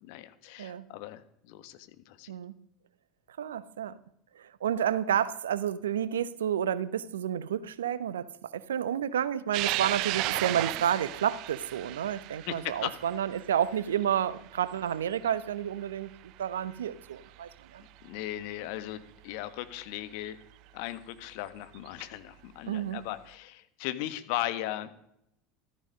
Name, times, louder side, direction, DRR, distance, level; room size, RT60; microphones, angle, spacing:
voice 1, 0.0-1.2 1.5-2.3 12.5-12.9 18.0-20.4 20.7-24.9, left 14 dB, 65° left, 11 dB, 1.5 m, -37 dB
voice 2, 3.4-4.0 4.3-17.8 22.7-23.0, right 9 dB, 80° right, 16 dB, 0.9 m, -30 dB
sound 1, 9.5-16.2 16.7-16.8 18.0-18.1 20.3-20.4 21.7-22.0, right 18 dB, 60° right, 0.6 m, -35 dB
14.5 x 13.5 x 5.4 m, 0.74 s
hypercardioid pair, 75°, 0 cm